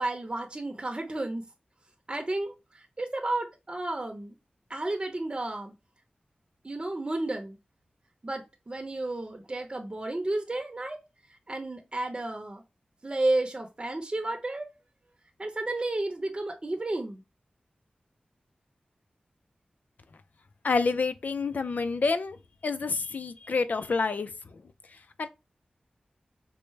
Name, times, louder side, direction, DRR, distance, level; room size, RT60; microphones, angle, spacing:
voice 1, 0.0-1.4 2.1-4.4 4.7-5.7 6.6-7.6 8.2-11.0 11.5-12.6 13.0-14.7 15.4-17.2, right 2 dB, 35° right, 0.7 m, -32 dB
voice 2, 20.6-22.4 22.6-24.3 25.2-25.3, left 4 dB, 70° left, 0.4 m, -28 dB
4.5 x 2.0 x 3.2 m
wide cardioid pair, 60°, 3 cm